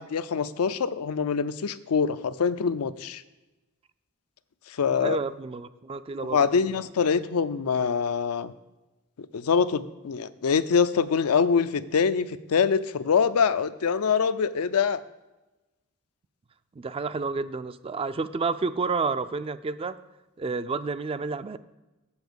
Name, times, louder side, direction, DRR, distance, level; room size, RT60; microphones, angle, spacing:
voice 1, 0.0-3.2 4.8-5.2 6.3-8.5 9.3-15.0, left 6 dB, 80° left, 13 dB, 0.5 m, -24 dB
voice 2, 4.9-6.5 16.8-20.0 20.4-21.6, right 4 dB, 25° right, 13 dB, 0.3 m, -30 dB
7.1 x 7.0 x 8.0 m, 1.1 s
head